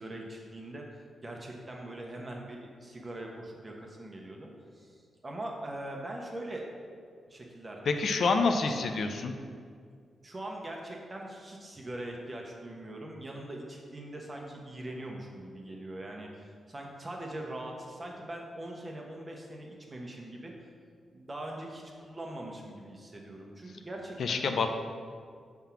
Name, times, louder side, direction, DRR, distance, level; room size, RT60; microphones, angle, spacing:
voice 1, 0.0-6.7 7.3-9.0 10.2-20.5 21.1-24.4, right 1 dB, 30° right, 0 dB, 1.1 m, -42 dB
voice 2, 7.9-9.3 24.2-24.7, left 4 dB, 70° left, 6 dB, 0.5 m, -27 dB
5.6 x 3.6 x 5.8 m, 2.1 s
cardioid pair, 75°, 0 cm